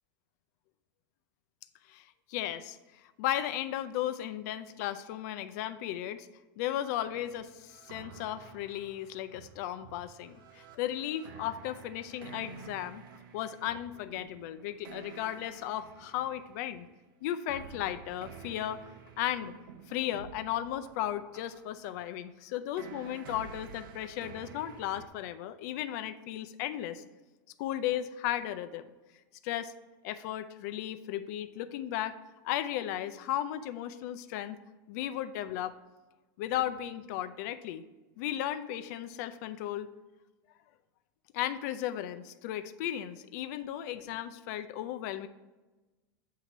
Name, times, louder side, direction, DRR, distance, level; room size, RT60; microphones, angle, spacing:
voice 1, 1.9-6.3 6.6-13.0 13.3-16.9 17.2-18.9 19.2-19.5 19.9-27.0 27.6-28.9 29.4-29.7 30.0-32.2 32.4-34.6 34.9-35.8 36.4-37.8 38.2-39.9 41.3-45.3, left 12 dB, 50° left, 10 dB, 0.5 m, -35 dB
sound 1, 7.0-16.8 17.5-25.1, right 6 dB, 80° right, 0.8 m, -51 dB
8.3 x 2.8 x 5.9 m, 1.1 s
supercardioid pair, 160°, 11 cm